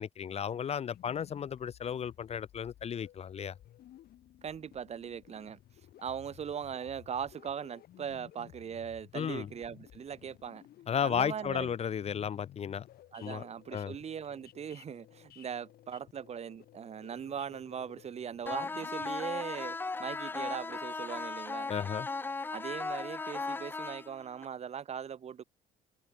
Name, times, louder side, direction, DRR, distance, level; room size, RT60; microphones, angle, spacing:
voice 1, 0.0-3.5 9.1-9.5 10.9-12.9 13.2-13.4 13.7-13.9 21.7-22.1, left 8 dB, 40° left, 0.7 m, -34 dB
sound 1, 0.9-19.1, left 12 dB, 65° left, 6.4 m, -56 dB
voice 2, 4.4-5.6 6.0-10.6 11.0-11.8 13.1-21.7 22.5-25.4, right 8 dB, 40° right, 1.1 m, -40 dB
sound 2, 18.5-24.5, left 3 dB, 10° left, 0.3 m, -37 dB
cardioid pair, 110°, 17 cm